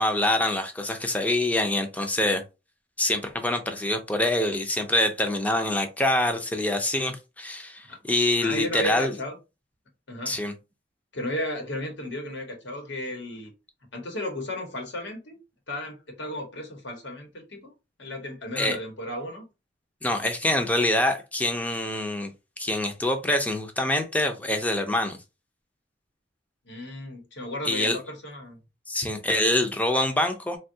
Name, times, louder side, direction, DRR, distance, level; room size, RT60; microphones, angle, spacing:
voice 1, 0.0-2.4 3.0-9.1 10.3-10.5 18.6-18.8 20.0-22.3 22.6-25.2 27.6-28.0 28.9-30.6, left 1 dB, 10° left, 0.4 m, -25 dB
voice 2, 8.4-9.4 10.1-10.4 11.1-13.5 13.9-15.4 15.7-17.7 18.0-19.5 26.7-28.6, left 1 dB, 80° left, 1.1 m, -34 dB
3.4 x 2.3 x 2.6 m
head